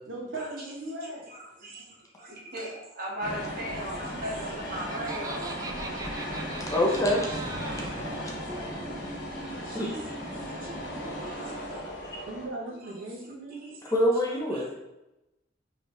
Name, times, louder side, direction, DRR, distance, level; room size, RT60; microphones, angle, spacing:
voice 1, 0.0-1.3 12.3-13.8, right 2 dB, 70° right, -1 dB, 0.8 m, -38 dB
voice 2, 1.0-5.7 6.7-6.8 7.3-7.5 7.7-7.8 8.1-8.9 9.6-10.7 11.0-11.8 12.7-12.9 13.5-13.8 14.5-14.7, right 1 dB, 50° right, -5 dB, 1.3 m, -40 dB
sound 1, 3.2-12.5, equal, 50° left, 1.3 m, -36 dB
Laughter, 4.3-8.0, right 3 dB, 20° right, 0.3 m, -41 dB
voice 3, 6.7-7.3 9.6-10.0 13.9-14.7, left 1 dB, 15° left, -2 dB, 0.6 m, -25 dB
4.9 x 3.0 x 3.1 m, 0.95 s
head